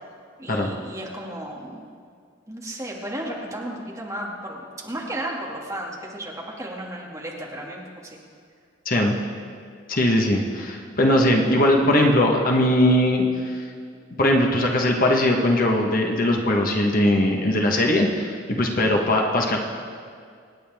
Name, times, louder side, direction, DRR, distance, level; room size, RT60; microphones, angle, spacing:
voice 1, 0.4-1.8 2.5-8.2, right 1 dB, 15° right, -3 dB, 2.2 m, -34 dB
voice 2, 8.8-9.2 9.9-13.6 14.2-19.6, left 1 dB, 50° left, 1 dB, 1.3 m, -20 dB
26.5 x 9.6 x 3.6 m, 2.2 s
head